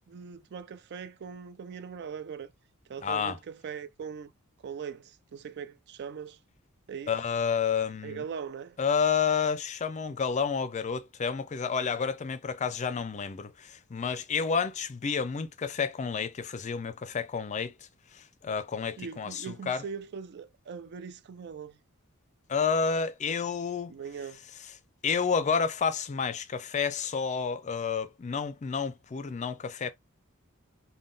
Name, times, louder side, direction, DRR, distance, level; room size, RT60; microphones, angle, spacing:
voice 1, 0.1-2.5 2.9-4.3 4.6-6.4 6.9-7.1 8.0-8.8 19.0-21.8 23.9-24.4, right 6 dB, 50° right, 0.4 m, -40 dB
voice 2, 3.0-3.4 7.1-8.2 8.8-17.7 18.1-19.8 22.5-23.9 25.0-29.9, left 6 dB, 35° left, 0.4 m, -30 dB
3.7 x 2.2 x 3.7 m
head